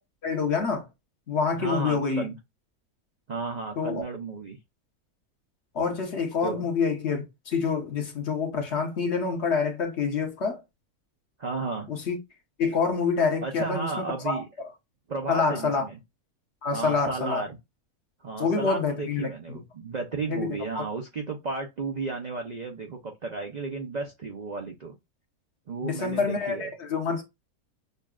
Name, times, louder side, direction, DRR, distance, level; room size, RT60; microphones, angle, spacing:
voice 1, 0.2-0.9 1.3-2.3 3.8-4.0 5.7-10.6 11.9-12.2 12.6-14.4 15.3-15.9 16.6-17.4 18.4-19.6 20.3-20.8 25.8-27.2, left 5 dB, 50° left, 1.2 m, -27 dB
voice 2, 1.5-2.4 3.3-4.6 6.4-6.7 11.4-11.9 13.4-14.5 15.1-16.0 16.7-17.6 18.2-24.9 25.7-26.7, right 4 dB, 55° right, 0.5 m, -33 dB
6.7 x 2.3 x 2.3 m
omnidirectional pair, 1.5 m